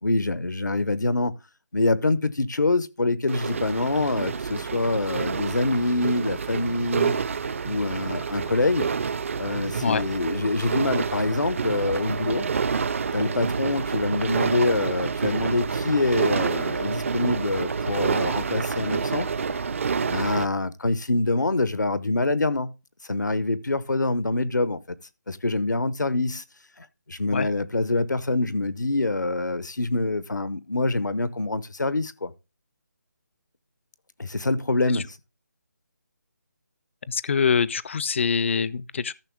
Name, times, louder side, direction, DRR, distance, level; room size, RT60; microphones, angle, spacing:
voice 1, 0.0-1.3 1.7-7.2 7.6-8.9 9.4-12.5 13.1-19.3 20.1-22.7 23.1-24.8 25.3-26.4 26.8-32.3 34.2-35.2, left 2 dB, 85° left, 0.9 m, -25 dB
sound 1, 3.3-20.5, right 5 dB, 45° right, 0.6 m, -28 dB
sound 2, 10.9-19.9, right 3 dB, 75° right, 2.1 m, -37 dB
voice 2, 37.1-39.1, left 6 dB, 45° left, 0.4 m, -24 dB
13.5 x 5.9 x 3.5 m
figure-of-eight pair, 155°, 10 cm